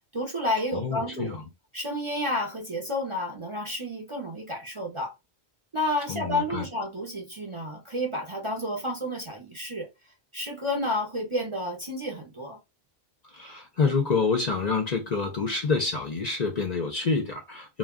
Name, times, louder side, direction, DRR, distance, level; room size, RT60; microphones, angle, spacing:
voice 1, 0.1-1.4 1.7-5.1 5.7-9.9 10.3-12.6, left 1 dB, 35° right, 0.5 m, -30 dB
voice 2, 0.7-1.4 6.1-6.7 13.3-17.8, left 4 dB, 50° left, 0.5 m, -27 dB
2.3 x 2.2 x 3.4 m
omnidirectional pair, 1.1 m